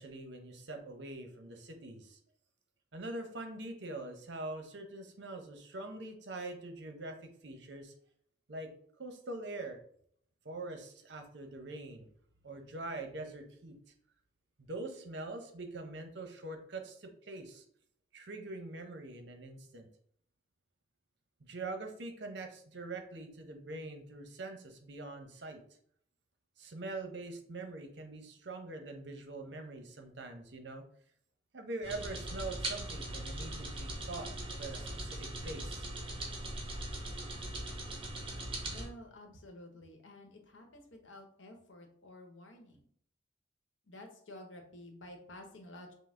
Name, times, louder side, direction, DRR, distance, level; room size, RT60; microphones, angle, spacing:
voice 1, 0.0-2.2 2.9-7.9 8.5-8.7 9.0-9.8 10.4-12.1 12.4-13.8 14.6-17.6 18.1-19.9 21.4-25.6 26.6-30.9 31.5-35.9, right 2 dB, 60° right, 5 dB, 0.7 m, -44 dB
sound 1, 31.8-38.9, right 1 dB, 25° right, 0.8 m, -40 dB
voice 2, 38.7-42.9 43.8-45.9, left 1 dB, 75° left, 4 dB, 0.9 m, -51 dB
5.3 x 2.0 x 3.6 m, 0.63 s
head